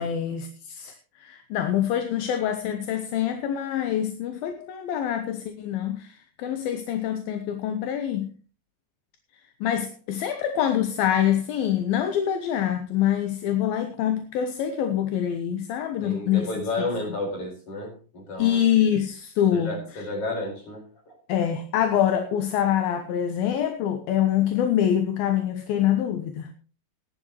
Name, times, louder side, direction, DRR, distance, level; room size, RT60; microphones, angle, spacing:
voice 1, 0.0-8.3 9.6-16.5 18.4-20.0 21.3-26.5, left 10 dB, 70° left, 7 dB, 2.6 m, -25 dB
voice 2, 16.0-18.6 19.5-21.2, left 2 dB, 35° left, 1 dB, 5.8 m, -32 dB
19.0 x 10.5 x 3.1 m, 0.36 s
omnidirectional pair, 4.8 m